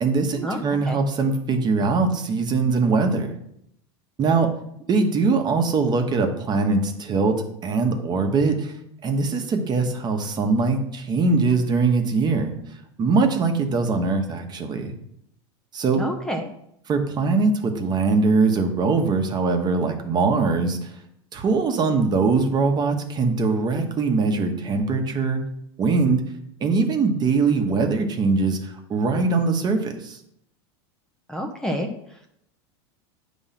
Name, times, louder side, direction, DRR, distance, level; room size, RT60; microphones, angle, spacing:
voice 1, 0.0-3.4 4.2-4.5 4.9-7.4 7.6-8.7 9.0-12.5 13.0-14.9 15.7-16.0 16.9-20.9 21.3-25.4 25.8-26.2 26.6-30.2, right 4 dB, 30° right, 5 dB, 1.1 m, -22 dB
voice 2, 16.0-16.5 31.3-31.9, equal, 5° left, 1 dB, 0.7 m, -28 dB
8.8 x 3.1 x 5.8 m, 0.74 s
supercardioid pair, 120°, 15 cm